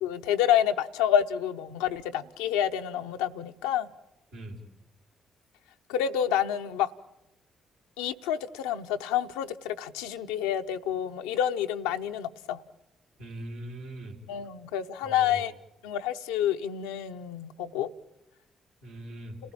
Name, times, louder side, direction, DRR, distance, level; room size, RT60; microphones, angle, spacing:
voice 1, 0.0-3.9 5.9-6.9 8.0-12.6 14.3-15.5 15.8-17.9, left 10 dB, 80° left, 0.8 m, -28 dB
voice 2, 13.2-14.2 15.0-15.4 18.8-19.4, right 1 dB, 80° right, 3.6 m, -41 dB
30.0 x 15.5 x 8.9 m
hypercardioid pair, 45°, 0 cm